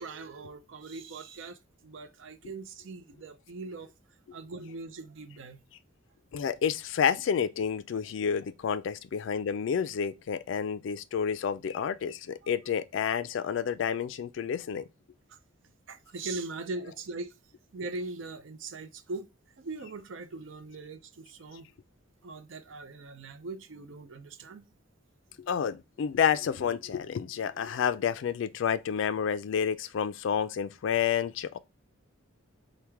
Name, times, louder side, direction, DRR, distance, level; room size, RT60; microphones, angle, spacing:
voice 1, 0.0-3.9 4.3-5.6 12.4-12.5 15.3-15.4 15.9-17.3 17.7-19.3 19.6-21.7 22.2-24.7, right 3 dB, 65° right, 0.5 m, -40 dB
voice 2, 6.3-14.9 25.4-31.6, left 7 dB, 65° left, 0.3 m, -29 dB
4.6 x 2.1 x 3.4 m
head